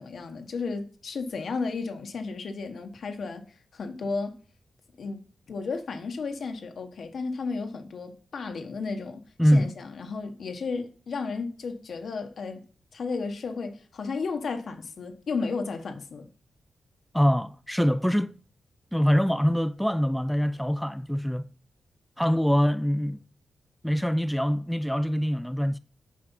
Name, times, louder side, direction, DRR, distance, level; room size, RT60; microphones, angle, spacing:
voice 1, 0.0-3.4 3.7-4.4 5.0-5.2 5.5-9.2 9.5-12.6 12.9-16.3, left 4 dB, 70° left, 1.2 m, -33 dB
voice 2, 9.4-9.7 17.1-18.4 18.9-21.5 22.2-23.2 23.8-25.8, equal, ahead, 0.3 m, -24 dB
7.6 x 4.8 x 5.6 m
cardioid pair, 80°, 0 cm